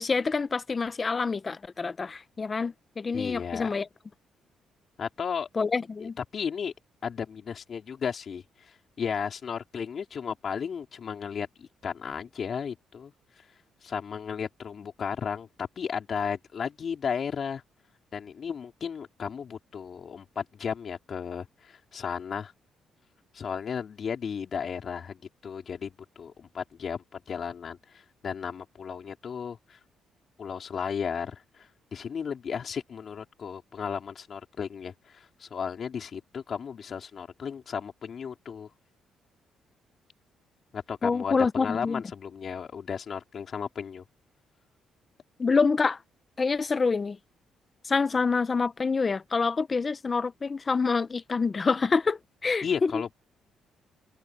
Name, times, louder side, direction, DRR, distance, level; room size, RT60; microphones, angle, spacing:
voice 1, 0.0-3.9 5.6-6.2 41.0-42.0 45.4-46.0 46.4-47.2 47.8-52.9, left 4 dB, 30° left, 1.1 m, -26 dB
voice 2, 3.1-3.7 5.0-5.5 6.0-6.7 7.0-13.1 13.8-17.6 18.1-22.5 23.3-29.8 30.4-38.7 40.7-44.0 52.6-53.2, left 7 dB, 50° left, 4.3 m, -34 dB
cardioid pair, 90°, 0 cm